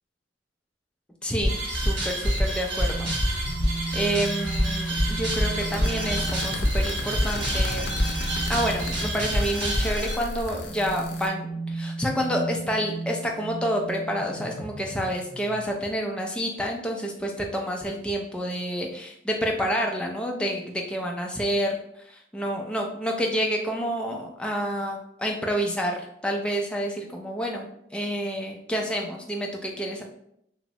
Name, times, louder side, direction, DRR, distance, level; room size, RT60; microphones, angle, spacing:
voice 1, 1.2-3.1 3.9-7.9 8.5-30.0, equal, 5° left, 1 dB, 0.3 m, -29 dB
sound 1, 1.4-10.1, equal, 75° right, 0.9 m, -26 dB
sound 2, 2.8-15.7, right 2 dB, 50° right, 0.7 m, -35 dB
sound 3, 5.6-11.3, left 3 dB, 85° left, 0.4 m, -38 dB
3.0 x 2.0 x 2.7 m, 0.74 s
head